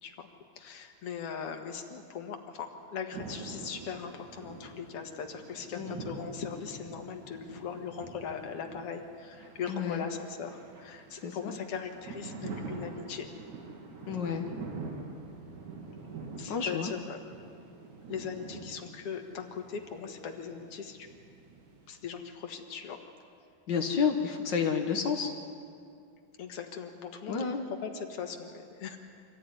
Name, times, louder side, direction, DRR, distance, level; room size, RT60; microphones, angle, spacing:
voice 1, 0.6-13.3 16.4-17.2 18.1-21.1 21.9-23.0 26.4-27.5 27.8-29.0, left 6 dB, 50° left, 4 dB, 2.0 m, -39 dB
sound 1, 3.1-22.0, right 4 dB, 60° right, 3.6 m, -45 dB
voice 2, 5.8-6.1 9.7-10.1 11.2-11.6 14.1-14.5 16.5-16.9 23.7-25.3 27.3-27.7, left 6 dB, 85° left, 3 dB, 0.9 m, -30 dB
25.0 x 15.5 x 9.8 m, 2.3 s
omnidirectional pair, 4.1 m